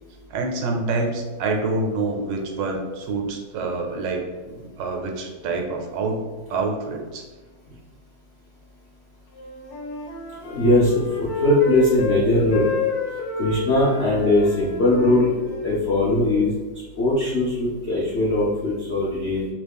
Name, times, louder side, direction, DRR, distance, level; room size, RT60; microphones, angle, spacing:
voice 1, 0.3-6.2 6.5-7.3, right 3 dB, 85° right, 2 dB, 1.3 m, -27 dB
Wind instrument woodwind instrument, 9.3-12.2 12.5-15.8, left 4 dB, 65° left, 1.0 m, -30 dB
voice 2, 10.4-11.0 11.4-12.7 13.4-15.3 15.6-16.5 17.0-19.5, left 1 dB, 80° left, -5 dB, 0.5 m, -20 dB
3.1 x 2.3 x 3.4 m, 1.3 s
omnidirectional pair, 2.0 m